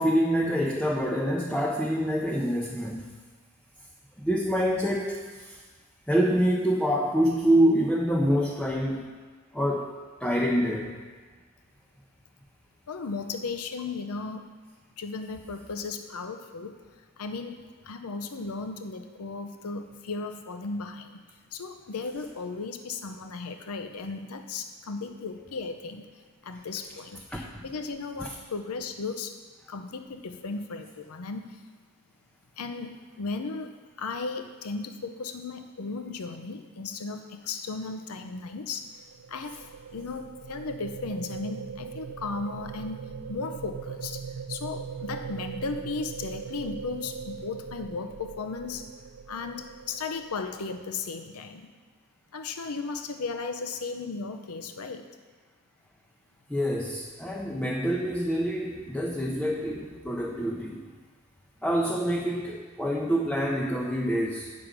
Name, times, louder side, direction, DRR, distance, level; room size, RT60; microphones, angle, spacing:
voice 1, 0.0-3.1 4.2-5.6 6.1-9.1 9.5-9.9 10.2-10.9 27.3-27.6 56.5-60.9 61.6-64.5, equal, 5° left, -2 dB, 0.6 m, -26 dB
voice 2, 12.9-14.5 15.0-16.8 17.2-21.2 21.5-26.1 26.4-29.4 29.7-31.6 32.6-33.7 34.0-39.0 39.3-39.6 39.9-43.0 43.3-48.9 49.3-51.7 52.3-55.1, left 4 dB, 75° left, 6 dB, 0.6 m, -35 dB
sound 1, 38.7-50.9, right 6 dB, 75° right, 0.4 m, -40 dB
8.7 x 6.0 x 5.1 m, 1.5 s
head